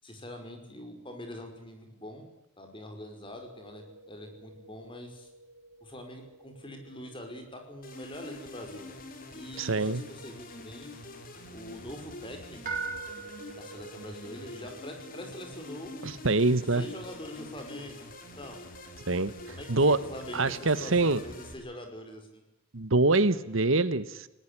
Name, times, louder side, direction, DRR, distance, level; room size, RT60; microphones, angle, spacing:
voice 1, 0.0-2.3 2.6-5.3 5.8-9.0 9.3-10.9 11.5-12.8 13.5-15.9 16.7-18.1 18.4-18.6 19.5-22.4, equal, 25° left, 4 dB, 5.3 m, -44 dB
sound 1, 3.2-18.7, right 4 dB, 40° right, 7.8 m, -47 dB
sound 2, 7.8-21.5, left 2 dB, 40° left, 3.9 m, -46 dB
voice 2, 9.6-10.0 16.0-16.8 19.1-19.3 19.7-20.0 20.3-21.2 22.7-24.3, right 2 dB, 70° right, 15 dB, 1.3 m, -25 dB
20.0 x 19.5 x 9.9 m, 0.92 s
head